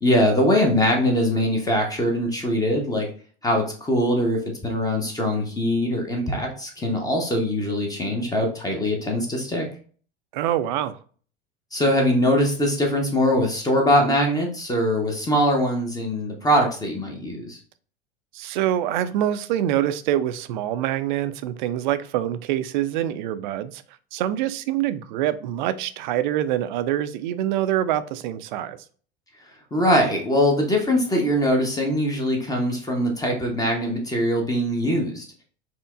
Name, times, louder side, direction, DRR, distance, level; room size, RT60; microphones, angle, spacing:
voice 1, 0.0-3.1 3.4-9.7 11.7-17.6 29.7-35.2, equal, 10° left, 0.9 m, -22 dB
voice 2, 10.3-10.9 18.3-23.8 24.1-28.8, right 12 dB, 55° right, 0.4 m, -25 dB
4.3 x 2.9 x 2.4 m
figure-of-eight pair, 80°, 29 cm